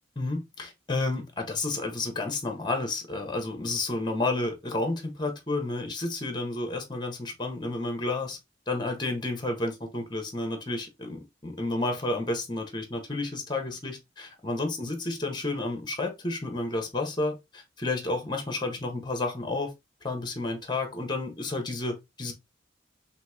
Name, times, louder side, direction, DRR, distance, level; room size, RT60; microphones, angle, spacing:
voice 1, 0.1-8.4 8.7-19.7 20.0-22.3, left 2 dB, 25° left, 1.3 m, -31 dB
5.6 x 2.8 x 2.8 m
head